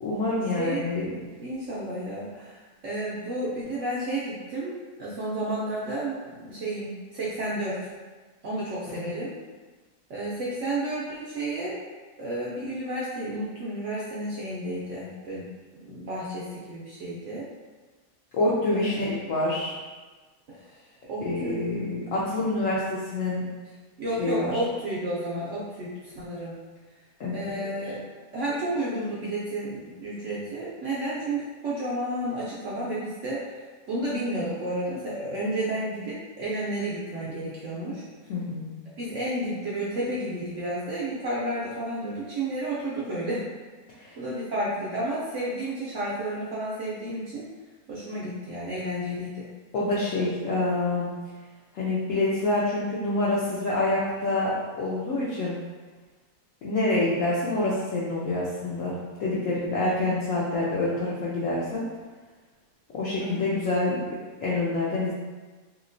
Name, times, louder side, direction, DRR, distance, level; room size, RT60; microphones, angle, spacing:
voice 1, 0.0-1.1 8.9-9.1 18.3-19.8 21.2-23.4 24.2-24.6 27.2-27.6 38.3-38.7 44.0-44.2 49.7-51.1 51.7-55.6 56.6-61.9 62.9-65.1, left 2 dB, 70° left, -7 dB, 0.8 m, -27 dB
voice 2, 1.4-4.7 5.0-7.8 8.4-9.3 10.1-11.8 12.2-15.4 15.8-17.5 18.7-19.1 20.5-20.8 21.1-22.0 22.5-22.7 24.0-26.6 27.3-28.0 28.3-38.0 39.0-43.5 44.2-47.5 47.9-49.5 63.2-63.6, right 1 dB, 65° right, -7 dB, 0.7 m, -31 dB
3.0 x 2.8 x 2.5 m, 1.3 s
omnidirectional pair, 1.7 m